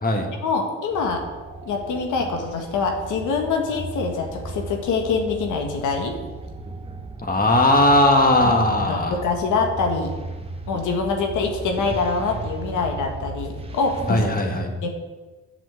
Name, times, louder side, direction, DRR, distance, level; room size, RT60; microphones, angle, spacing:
voice 1, 0.4-1.2 1.7-6.2 8.4-8.5 8.8-10.1 10.7-14.3 14.8-14.9, left 4 dB, 80° left, 3 dB, 1.7 m, -25 dB
sound 1, 0.9-14.3, right 2 dB, 20° right, 1.3 m, -36 dB
voice 2, 7.2-9.2 14.1-14.7, left 1 dB, 30° left, 3 dB, 1.9 m, -18 dB
7.8 x 6.2 x 7.9 m, 1.3 s
cardioid pair, 90°, 30 cm